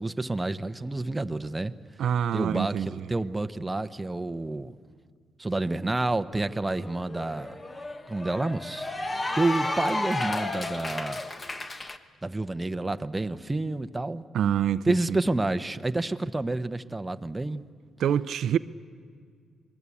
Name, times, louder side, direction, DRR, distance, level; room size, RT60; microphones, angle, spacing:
voice 1, 0.0-1.7 2.3-4.7 5.4-7.6 8.1-8.9 9.4-11.2 12.2-14.2 14.8-17.6, right 2 dB, 15° right, 0.9 m, -29 dB
voice 2, 2.0-3.1 14.3-15.2 18.0-18.6, right 9 dB, 70° right, 0.6 m, -26 dB
Cheering / Applause, 6.5-12.0, left 2 dB, 25° left, 1.3 m, -33 dB
27.5 x 21.0 x 8.5 m
cardioid pair, 90°, 0 cm